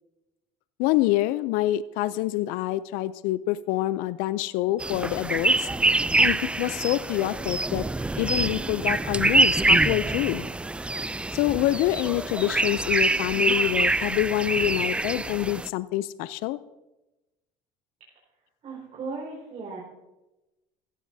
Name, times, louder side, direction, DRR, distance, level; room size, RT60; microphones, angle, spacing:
voice 1, 0.8-5.7 6.2-7.9 8.2-10.5 11.3-16.6, left 15 dB, 75° left, 17 dB, 0.5 m, -26 dB
sound 1, 4.8-15.7, right 2 dB, 10° right, 0.3 m, -25 dB
voice 2, 18.4-19.8, right 4 dB, 45° right, -5 dB, 4.8 m, -37 dB
16.0 x 14.5 x 2.7 m, 1.0 s
supercardioid pair, 95°, 14 cm